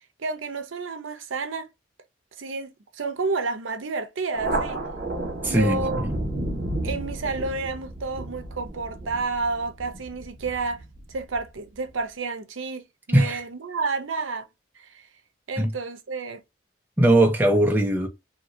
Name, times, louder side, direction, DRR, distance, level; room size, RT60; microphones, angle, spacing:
voice 1, 0.2-1.7 2.4-4.8 5.5-6.1 6.8-10.8 11.1-14.5 14.8-15.1 15.5-16.4, right 3 dB, 80° right, 0.6 m, -30 dB
Thunder, 4.3-11.4, right 1 dB, 50° right, 1.3 m, -32 dB
voice 2, 5.4-6.1 13.1-13.4 15.6-15.7 17.0-18.1, right 1 dB, 10° right, 0.6 m, -20 dB
2.8 x 2.7 x 2.6 m
head